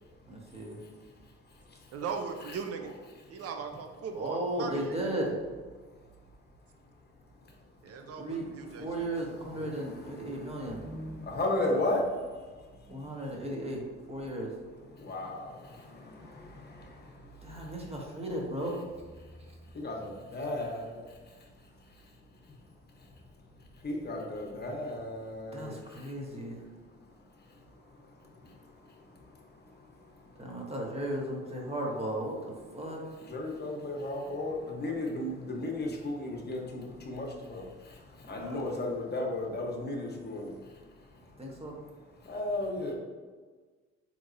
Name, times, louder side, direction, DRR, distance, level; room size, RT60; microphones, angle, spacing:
voice 1, 0.3-0.8 4.1-5.3 8.2-10.8 12.9-13.8 14.1-14.5 17.4-18.8 25.5-26.7 30.4-33.0 38.2-38.8 41.4-41.8, right 1 dB, 20° right, -2 dB, 1.0 m, -35 dB
voice 2, 1.9-2.9 3.3-5.1 7.8-9.1, right 5 dB, 55° right, 5 dB, 0.6 m, -38 dB
voice 3, 10.8-12.0 15.0-15.5 19.8-20.9 23.8-25.7 33.3-37.6 38.3-40.5 42.3-42.9, left 2 dB, 35° left, 0 dB, 1.0 m, -34 dB
3.8 x 3.0 x 2.5 m, 1.4 s
supercardioid pair, 65°, 29 cm